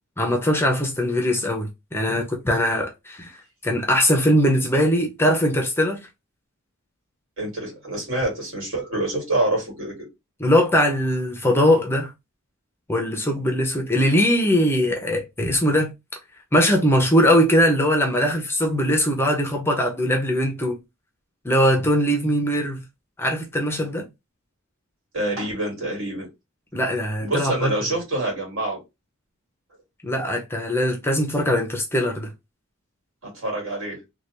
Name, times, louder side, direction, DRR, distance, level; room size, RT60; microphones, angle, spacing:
voice 1, 0.2-6.1 10.4-12.1 12.9-15.9 16.5-20.8 21.4-22.8 23.2-24.1 26.7-27.7 30.0-32.3, equal, 10° left, 0.6 m, -21 dB
voice 2, 7.4-10.1 25.1-26.3 27.2-28.8 33.2-34.0, right 1 dB, 65° right, 2.0 m, -26 dB
3.2 x 2.3 x 2.8 m
head